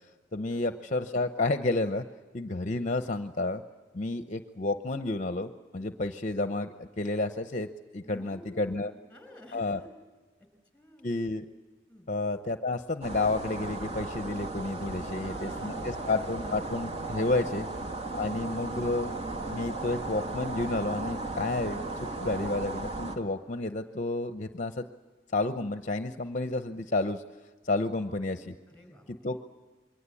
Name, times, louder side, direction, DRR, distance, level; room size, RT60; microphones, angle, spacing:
voice 1, 0.3-2.0 2.3-3.6 3.9-7.7 7.9-8.9 9.5-9.8 11.0-11.5 12.1-17.7 18.1-19.1 19.5-21.8 22.2-24.9 25.3-27.2 27.6-28.5 29.2-29.4, left 2 dB, 40° left, 8 dB, 0.8 m, -30 dB
voice 2, 8.0-9.9 10.7-11.2 11.9-12.1 15.1-16.3 17.2-17.6 28.7-29.3, left 1 dB, 5° left, 7 dB, 5.5 m, -51 dB
sound 1, 13.0-23.2, right 2 dB, 30° right, 2.4 m, -36 dB
28.5 x 23.0 x 8.5 m, 1.3 s
head